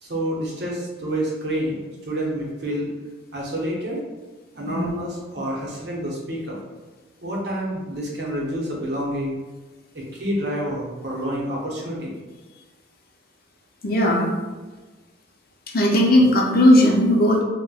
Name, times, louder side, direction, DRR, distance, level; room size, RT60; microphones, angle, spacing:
voice 1, 0.0-2.9 3.3-4.0 4.5-6.6 7.2-9.3 9.9-12.1, equal, 55° right, -4 dB, 0.7 m, -28 dB
voice 2, 13.8-14.3 15.7-17.4, left 1 dB, 50° left, 0 dB, 0.5 m, -17 dB
4.1 x 2.1 x 2.3 m, 1.3 s
head